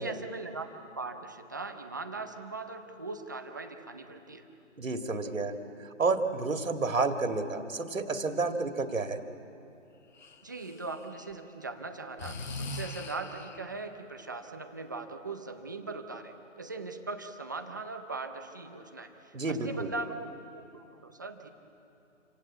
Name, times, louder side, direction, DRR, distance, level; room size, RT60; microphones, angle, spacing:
voice 1, 0.0-4.5 10.4-21.5, right 3 dB, 15° right, 6 dB, 0.6 m, -40 dB
voice 2, 4.8-5.5 6.0-9.2 19.3-19.9, right 3 dB, 85° right, 6 dB, 2.2 m, -30 dB
Breathing, 10.2-11.3 12.2-13.8, left 2 dB, 35° left, 0.9 m, -41 dB
27.5 x 16.5 x 8.5 m, 2.8 s
hypercardioid pair, 160°, 39 cm